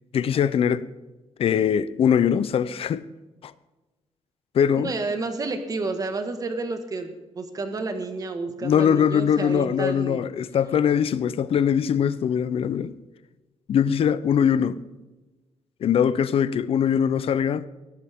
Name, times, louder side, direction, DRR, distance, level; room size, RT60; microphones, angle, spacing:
voice 1, 0.1-0.9 1.4-3.0 3.4-3.5 4.5-4.9 8.6-12.9 13.7-14.8 15.8-17.7, left 8 dB, 55° left, 0.6 m, -22 dB
voice 2, 4.8-10.3, right 3 dB, 30° right, 1.6 m, -30 dB
18.0 x 13.0 x 3.7 m
wide cardioid pair, 160°, 12 cm